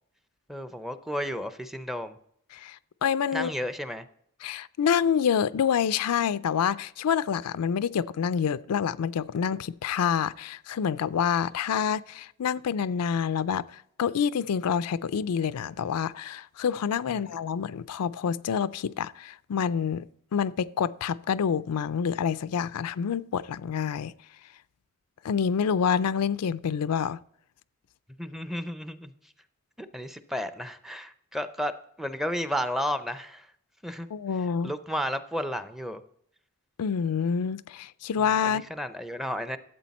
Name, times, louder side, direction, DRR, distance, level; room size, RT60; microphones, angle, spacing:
voice 1, 0.5-2.2 3.3-4.1 17.2-17.3 28.2-29.1 29.8-31.7 32.0-33.5 33.8-34.1 34.6-36.0 38.4-39.6, equal, ahead, 0.5 m, -32 dB
voice 2, 2.5-3.5 4.4-20.0 20.3-24.1 25.2-27.2 34.1-34.7 36.8-38.6, left 7 dB, 85° left, 0.4 m, -27 dB
13.5 x 7.8 x 4.2 m
head